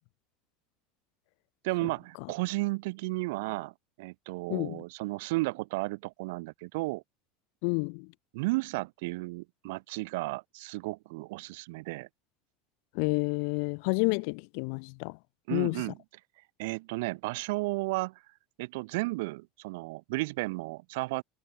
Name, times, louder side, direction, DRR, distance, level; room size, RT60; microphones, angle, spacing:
voice 1, 1.6-7.0 8.3-12.1 15.5-15.9 16.6-18.2 18.6-21.2, right 23 dB, 75° right, 2.4 m, -33 dB
voice 2, 4.5-4.8 7.6-8.1 12.9-15.2 15.5-15.8, left 40 dB or more, 70° left, 2.3 m, -29 dB
supercardioid pair, 140°, 0 cm